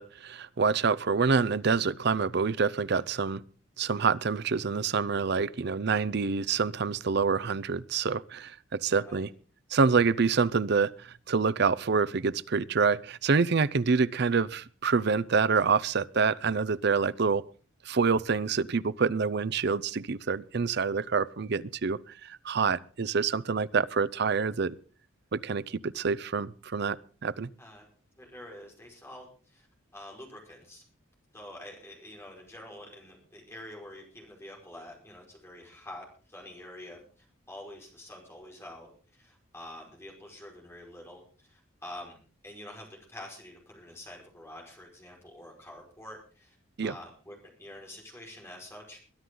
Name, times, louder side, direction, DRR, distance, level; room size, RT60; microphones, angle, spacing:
voice 1, 0.0-3.4 3.8-9.3 9.7-17.4 17.8-24.8 25.3-27.5 46.8-46.9, right 5 dB, 55° right, 0.6 m, -27 dB
voice 2, 9.0-9.3 27.6-27.9 28.2-29.7 29.9-30.8 31.3-42.2 42.4-46.6 46.8-49.0, left 1 dB, 15° left, 5.1 m, -47 dB
22.5 x 11.0 x 3.9 m
head